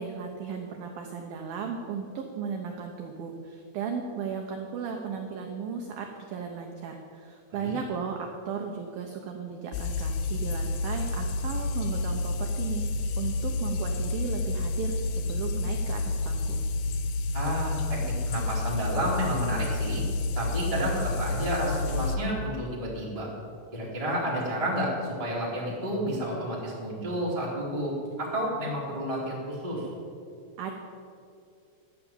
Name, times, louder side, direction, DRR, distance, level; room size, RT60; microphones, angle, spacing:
voice 1, 0.0-12.8 13.2-16.6 30.6-30.7, right 6 dB, 80° right, 2 dB, 2.1 m, -35 dB
sound 1, 9.7-22.2, left 2 dB, 80° left, 2.2 m, -29 dB
voice 2, 17.3-20.0 20.3-23.3 23.7-29.8, equal, 15° right, -6 dB, 1.1 m, -31 dB
13.0 x 7.0 x 8.7 m, 2.4 s
omnidirectional pair, 5.3 m